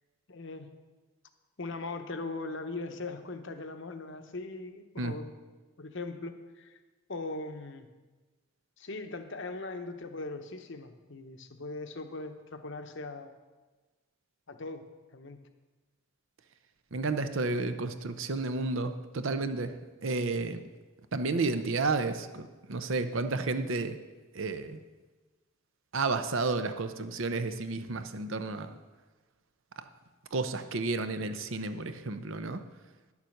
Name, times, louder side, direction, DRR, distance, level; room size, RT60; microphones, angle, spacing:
voice 1, 0.3-0.7 1.6-5.3 5.8-6.8 7.1-7.9 8.8-13.3 14.5-14.8 15.1-15.4, left 3 dB, 55° left, 7 dB, 0.9 m, -40 dB
voice 2, 16.9-20.6 21.1-24.0 24.3-24.8 25.9-28.8 29.8-29.9 30.3-32.6, right 3 dB, 60° right, 10 dB, 0.7 m, -31 dB
10.5 x 7.2 x 6.5 m, 1.2 s
head